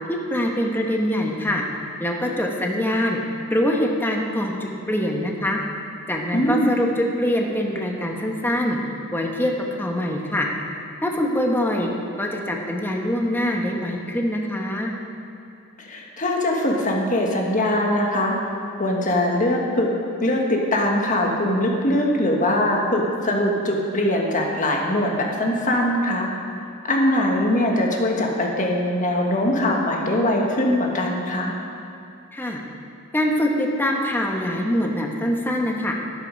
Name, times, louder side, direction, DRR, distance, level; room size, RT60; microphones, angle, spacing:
voice 1, 0.1-1.6 2.0-3.2 3.5-5.6 6.1-8.8 9.1-9.5 9.8-10.5 11.0-11.9 12.2-14.9 32.3-32.6 33.1-35.9, left 1 dB, 10° left, 0 dB, 1.0 m, -24 dB
voice 2, 6.3-6.7 15.8-18.4 18.8-19.9 20.2-26.3 26.8-31.5, left 1 dB, 35° left, 0 dB, 1.5 m, -22 dB
12.5 x 9.0 x 5.2 m, 2.6 s
head